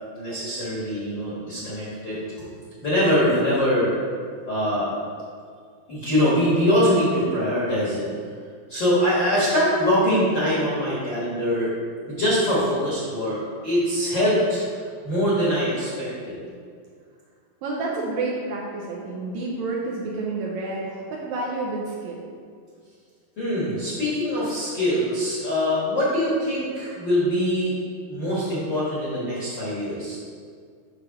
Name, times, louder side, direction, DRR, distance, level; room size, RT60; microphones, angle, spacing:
voice 1, 0.1-2.5 2.8-3.9 4.4-4.9 5.9-8.0 8.7-11.7 12.1-14.6 15.0-16.4 23.4-27.8 28.1-30.2, equal, 50° left, -9 dB, 1.3 m, -23 dB
voice 2, 17.6-22.2, right 3 dB, 90° right, -4 dB, 1.6 m, -29 dB
7.4 x 3.4 x 5.8 m, 2.1 s
omnidirectional pair, 4.1 m